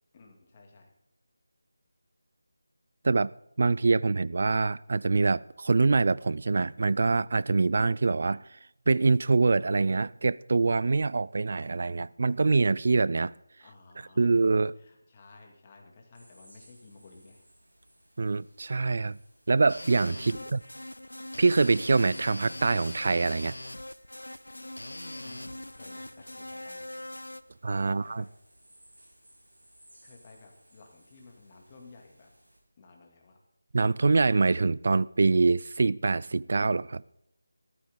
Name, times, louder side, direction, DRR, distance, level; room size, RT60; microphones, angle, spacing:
voice 1, 0.1-0.9 13.6-14.3 14.7-17.5 20.1-20.7 25.2-28.3 30.0-32.3 32.8-33.4, left 3 dB, 30° left, 2.4 m, -54 dB
voice 2, 3.6-8.4 8.9-13.3 14.2-14.8 18.2-19.2 19.5-20.3 21.4-23.6 27.6-28.2 33.7-37.0, right 3 dB, 50° right, 0.4 m, -24 dB
sound 1, 16.1-32.6, right 1 dB, 80° right, 6.0 m, -60 dB
sound 2, 19.7-27.4, left 1 dB, 90° left, 0.6 m, -41 dB
14.5 x 13.0 x 3.8 m
figure-of-eight pair, 165°, 0 cm